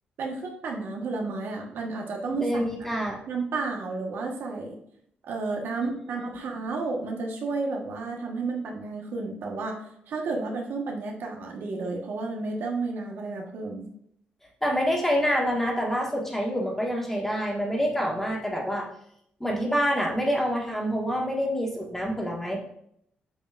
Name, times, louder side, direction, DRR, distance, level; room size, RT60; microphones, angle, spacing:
voice 1, 0.2-2.9 3.3-4.7 5.3-9.8 10.1-13.9, right 3 dB, 80° right, 0 dB, 1.2 m, -32 dB
voice 2, 2.3-3.2 14.6-18.9 19.4-22.6, equal, 10° left, -2 dB, 1.6 m, -27 dB
7.7 x 5.2 x 2.5 m, 0.70 s
cardioid pair, 130°, 4 cm